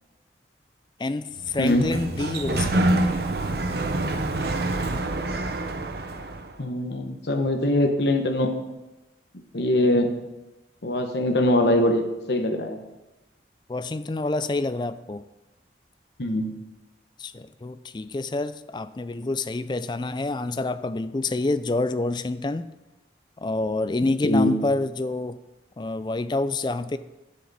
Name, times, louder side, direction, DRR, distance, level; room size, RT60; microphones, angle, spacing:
voice 1, 1.0-3.0 13.7-15.2 17.2-22.7 23.4-25.4 25.8-27.0, left 2 dB, 25° left, 13 dB, 0.3 m, -27 dB
Sliding door, 1.4-6.5, right 2 dB, 60° right, 0.7 m, -26 dB
voice 2, 6.6-8.5 9.5-10.1 10.8-12.8 16.2-16.5 24.2-24.5, left 1 dB, 70° left, 4 dB, 1.1 m, -22 dB
11.5 x 7.6 x 4.1 m, 1.0 s
head